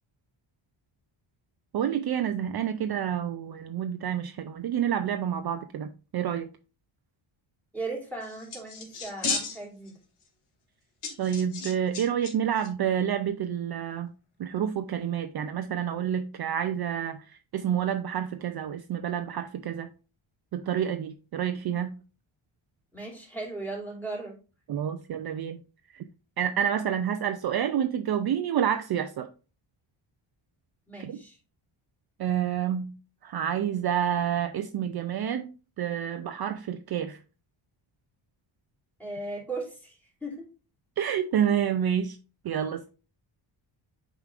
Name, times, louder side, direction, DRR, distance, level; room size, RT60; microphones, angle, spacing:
voice 1, 1.7-6.5 11.2-14.1 14.4-19.9 20.5-22.0 24.7-25.6 25.9-26.0 26.4-29.3 31.0-31.2 32.2-32.9 33.2-37.2 41.0-42.2 42.4-42.9, right 9 dB, 50° right, 0.5 m, -29 dB
voice 2, 7.7-10.0 22.9-24.4 30.9-31.4 39.0-40.4, right 2 dB, 5° left, 2.8 m, -37 dB
sound 1, 8.2-9.9 10.2-10.3 11.0-12.3 12.6-12.7, left 4 dB, 90° left, 2.5 m, -34 dB
8.0 x 5.0 x 2.5 m
wide cardioid pair, 130°, 49 cm